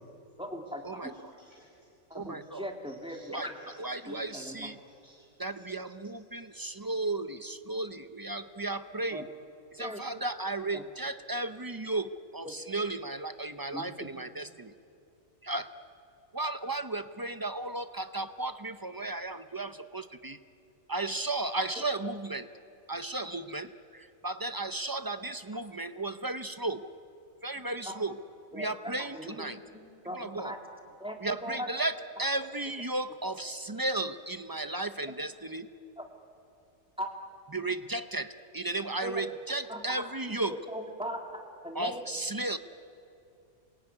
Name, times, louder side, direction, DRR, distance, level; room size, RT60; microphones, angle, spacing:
voice 1, 0.4-1.1 2.1-3.5 4.1-4.7 9.1-9.3 9.8-10.0 10.7-10.8 12.4-12.5 13.7-13.9 27.9-28.0 28.5-28.7 29.1-30.6 31.0-31.7 32.2-32.3 36.0-36.1 37.0-37.1 39.0-39.2 39.7-40.0 40.7-42.0, equal, 5° right, 2 dB, 2.5 m, -39 dB
voice 2, 1.0-1.9 2.9-5.3 5.5-5.6 6.3-6.7, right 1 dB, 60° right, -2 dB, 4.6 m, -62 dB
voice 3, 2.1-2.7 3.3-3.5 3.8-4.8 5.4-9.3 9.7-14.7 15.4-15.7 16.3-20.4 20.9-22.5 22.9-26.9 27.4-28.2 28.5-29.6 30.1-30.5 31.2-35.7 37.5-40.6 41.7-42.6, right 2 dB, 25° right, 11 dB, 0.5 m, -34 dB
27.5 x 22.0 x 9.7 m, 2.7 s
omnidirectional pair, 1.4 m